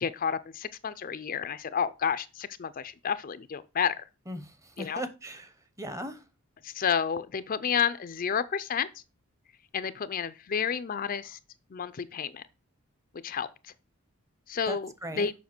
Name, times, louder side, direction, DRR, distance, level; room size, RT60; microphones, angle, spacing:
voice 1, 0.0-3.9 4.8-5.0 6.6-8.9 9.7-11.4 11.7-12.4 13.2-13.5 14.5-15.3, left 7 dB, 40° left, 0.4 m, -30 dB
voice 2, 4.3-5.5 5.8-6.2 14.7-15.3, right 1 dB, 15° right, 0.7 m, -38 dB
7.3 x 5.6 x 6.0 m
head